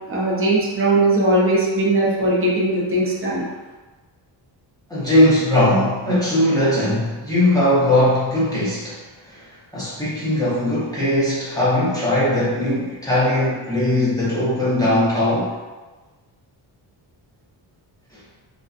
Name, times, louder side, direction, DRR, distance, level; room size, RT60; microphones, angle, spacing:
voice 1, 0.1-3.5, right 2 dB, 30° right, -5 dB, 0.6 m, -19 dB
voice 2, 4.9-9.0 9.3-9.4 9.7-15.5, left 1 dB, 10° left, -11 dB, 0.8 m, -19 dB
2.6 x 2.2 x 2.4 m, 1.3 s
wide cardioid pair, 125°, 45 cm